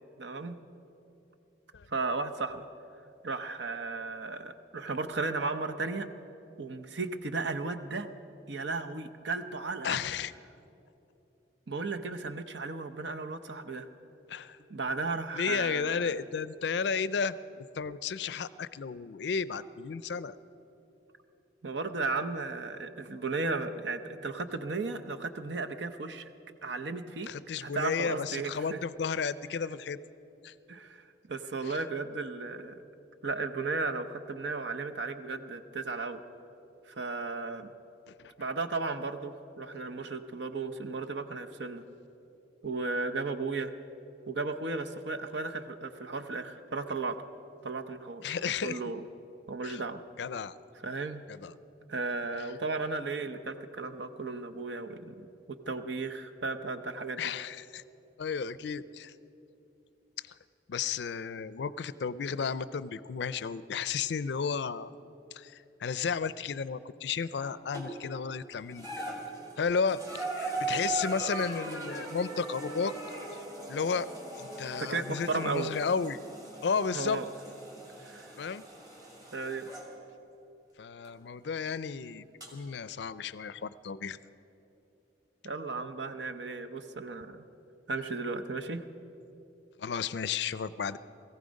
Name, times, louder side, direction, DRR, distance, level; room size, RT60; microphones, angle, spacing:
voice 1, 0.2-0.6 1.9-2.7 3.2-6.1 6.6-8.1 8.5-10.0 11.7-13.9 14.7-16.1 21.6-26.3 26.6-27.3 27.6-28.8 30.7-32.8 33.2-36.2 36.9-37.7 38.4-41.8 42.6-43.7 44.3-47.2 47.6-49.0 49.5-50.0 50.8-51.2 51.9-55.3 55.7-57.2 74.8-75.7 76.9-77.3 78.0-78.3 79.3-79.7 85.4-87.4 87.9-88.8, right 3 dB, 75° right, 7 dB, 0.8 m, -35 dB
voice 2, 9.8-10.3 14.3-14.6 15.3-20.3 27.3-30.0 30.4-30.5 31.6-31.8 38.1-38.3 48.2-48.8 49.6-49.8 50.2-50.5 51.3-51.5 57.2-57.8 58.2-59.1 60.7-64.9 65.3-69.2 69.6-72.9 73.3-73.4 73.7-74.1 74.4-76.2 76.6-77.2 78.4-78.6 80.8-82.2 82.5-84.2 89.8-91.0, left 6 dB, 70° left, 17 dB, 0.4 m, -33 dB
sound 1, 67.7-68.2 68.7-79.9 81.0-81.1 82.4-82.5, right 2 dB, 20° right, 2.3 m, -39 dB
18.5 x 15.0 x 5.2 m, 3.0 s
head